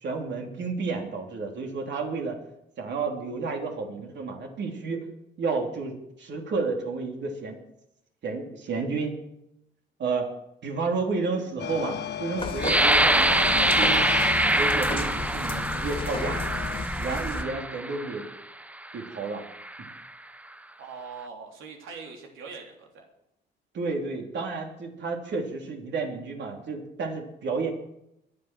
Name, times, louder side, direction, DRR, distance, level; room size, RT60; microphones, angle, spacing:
voice 1, 0.0-2.4 2.8-5.1 5.4-7.6 8.2-9.2 10.0-10.3 10.6-14.1 14.5-16.4 17.0-18.2 18.9-19.4 23.7-27.7, right 4 dB, 65° right, 2 dB, 3.4 m, -31 dB
sound 1, 11.6-16.8, left 9 dB, 60° left, 1.1 m, -34 dB
sound 2, 12.4-17.4, left 2 dB, 25° left, 2.3 m, -34 dB
sound 3, 12.6-18.3 18.9-19.1 19.5-20.0, right 1 dB, 5° right, 0.6 m, -24 dB
voice 2, 20.8-23.0, right 5 dB, 85° right, 1 dB, 3.3 m, -42 dB
22.5 x 7.8 x 6.2 m, 0.82 s
cardioid pair, 90°, 20 cm